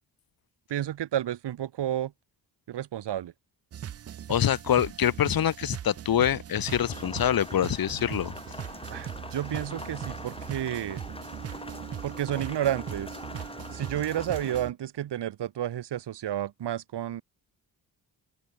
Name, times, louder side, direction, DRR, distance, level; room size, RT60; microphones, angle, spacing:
voice 1, 0.7-2.1 2.7-3.3 8.9-11.0 12.0-13.2 13.7-17.2, right 11 dB, 60° right, 0.9 m, -31 dB
sound 1, 3.7-14.7, right 9 dB, 35° right, 0.4 m, -40 dB
voice 2, 4.3-8.3, left 10 dB, 50° left, 0.8 m, -25 dB
Rain, 6.7-14.6, left 2 dB, 10° left, 1.2 m, -43 dB
open air
cardioid pair, 65°, 46 cm